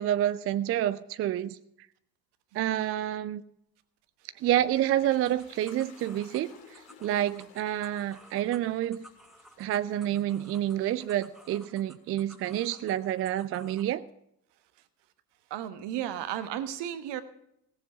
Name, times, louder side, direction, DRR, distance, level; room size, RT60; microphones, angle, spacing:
voice 1, 0.0-1.6 2.5-3.4 4.4-9.0 9.6-14.0, right 12 dB, 30° right, 14 dB, 0.4 m, -28 dB
Toilet flush, 4.3-13.1, left 6 dB, 60° left, 2.3 m, -57 dB
sound 1, 5.2-13.9, equal, ahead, 1.5 m, -55 dB
voice 2, 15.5-17.2, right 11 dB, 55° right, 11 dB, 1.3 m, -34 dB
17.0 x 7.2 x 7.0 m, 0.76 s
figure-of-eight pair, 55°, 50 cm